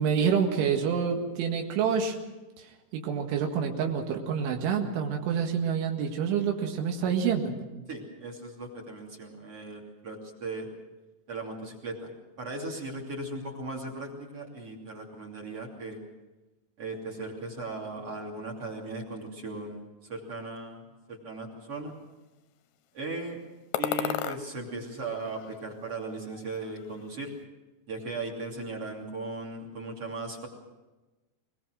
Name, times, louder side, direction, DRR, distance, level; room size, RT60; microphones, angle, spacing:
voice 1, 0.0-2.2 2.6-2.7 2.9-7.6, right 7 dB, 90° right, 2 dB, 4.3 m, -27 dB
voice 2, 7.9-10.7 11.3-12.1 12.4-16.0 16.8-19.8 20.1-20.8 21.1-21.9 22.9-23.4 23.8-27.3 27.9-30.5, right 2 dB, 35° right, 2 dB, 3.2 m, -37 dB
sound 1, 23.7-24.4 25.0-26.0 26.2-27.0, left 12 dB, 75° left, 2.7 m, -34 dB
21.5 x 21.0 x 6.3 m, 1.1 s
omnidirectional pair, 5.4 m